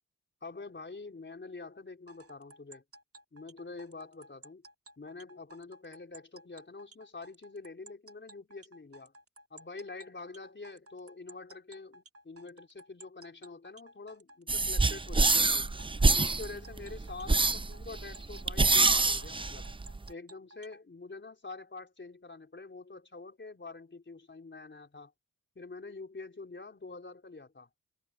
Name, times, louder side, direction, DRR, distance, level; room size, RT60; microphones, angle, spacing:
voice 1, 0.4-2.8 3.3-4.6 5.0-9.1 9.5-15.7 16.1-19.7 20.1-25.1 25.6-27.7, left 3 dB, 30° left, 4.1 m, -46 dB
sound 1, 2.1-20.8, right 2 dB, 40° right, 2.4 m, -55 dB
sound 2, 14.5-20.1, right 3 dB, 15° right, 0.6 m, -26 dB
cardioid pair, 60°, 36 cm